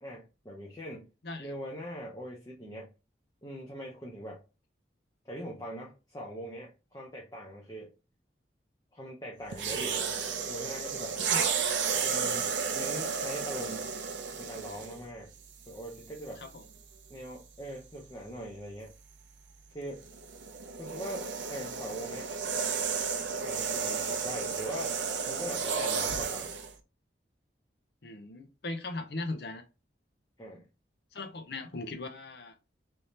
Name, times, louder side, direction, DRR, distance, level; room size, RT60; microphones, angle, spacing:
voice 1, 0.0-1.1 1.4-2.9 3.4-4.4 5.2-7.9 8.9-11.2 11.9-13.9 14.4-15.3 15.7-16.4 17.1-18.9 19.7-20.0 20.8-22.3 23.4-25.0 25.3-26.5 30.4-30.6, equal, 20° left, 0.6 m, -42 dB
voice 2, 1.2-1.5 11.3-11.4 11.8-11.9 16.4-16.6 28.0-29.6 31.1-32.5, left 2 dB, 60° left, 0.6 m, -39 dB
sound 1, 9.5-15.0 15.9-16.1 20.0-26.7, right 6 dB, 80° right, 0.5 m, -32 dB
3.4 x 2.7 x 3.1 m
head